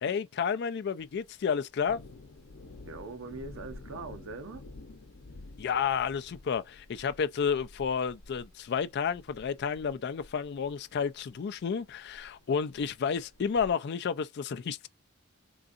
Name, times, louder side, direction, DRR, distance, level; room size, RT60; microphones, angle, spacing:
voice 1, 0.0-2.0 5.6-14.9, left 6 dB, 55° left, 0.4 m, -31 dB
Thunder, 1.0-13.7, left 2 dB, 90° left, 0.7 m, -51 dB
voice 2, 2.8-4.6, right 3 dB, 80° right, 0.7 m, -42 dB
3.8 x 2.6 x 2.4 m
head